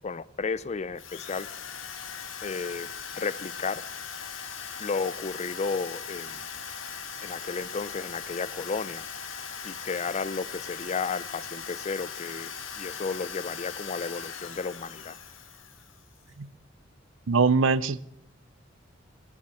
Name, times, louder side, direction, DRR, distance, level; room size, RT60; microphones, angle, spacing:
voice 1, 0.0-1.5 2.4-2.9 3.2-3.8 4.8-6.4 7.2-9.1 9.6-15.2, left 4 dB, 35° left, 18 dB, 0.4 m, -33 dB
Drill, 1.0-16.2, left 6 dB, 85° left, 1.6 m, -39 dB
voice 2, 17.3-18.0, right 4 dB, 80° right, 17 dB, 0.6 m, -22 dB
19.0 x 7.2 x 7.9 m, 0.82 s
head